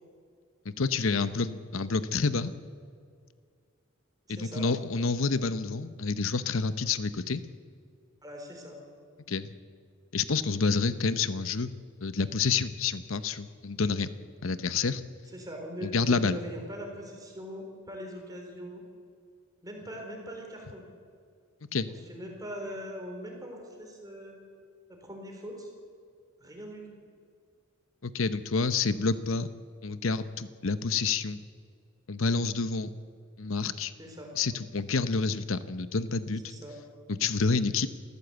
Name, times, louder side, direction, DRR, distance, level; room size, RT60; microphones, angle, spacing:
voice 1, 0.6-2.5 4.3-7.4 9.3-9.5 10.1-11.7 12.0-14.1 14.4-15.0 15.8-16.4 21.7-21.9 28.0-29.5 29.8-31.4 32.1-32.9 33.4-33.9 34.4-36.5 37.1-37.9, left 4 dB, 65° left, 13 dB, 0.9 m, -28 dB
voice 2, 4.3-4.7 8.2-8.8 15.3-18.8 19.6-20.8 22.1-24.3 24.9-25.7 26.4-26.8 34.0-34.3 36.4-36.8, equal, 15° right, 1 dB, 4.1 m, -41 dB
28.0 x 14.0 x 8.1 m, 2.2 s
head